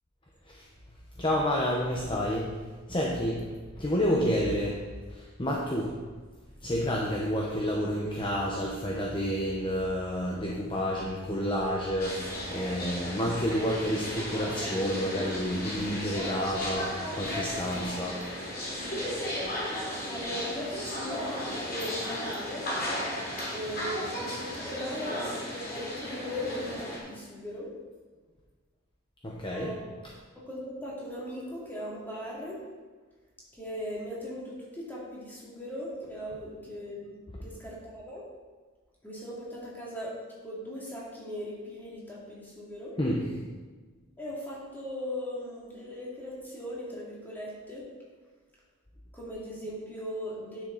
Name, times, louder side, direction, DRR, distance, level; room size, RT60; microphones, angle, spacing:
voice 1, 1.2-2.5 2.9-3.4 3.8-6.0 6.6-18.2 29.2-29.7 43.0-43.2, equal, 25° left, -2 dB, 0.9 m, -29 dB
sound 1, 12.0-27.0, left 1 dB, 50° left, 2.9 m, -35 dB
voice 2, 20.1-22.7 23.5-27.7 29.5-29.8 30.3-32.6 33.5-37.2 37.4-38.2 39.0-42.9 44.2-47.9 49.1-50.6, equal, 10° left, -6 dB, 2.6 m, -39 dB
10.5 x 6.4 x 4.0 m, 1.4 s
head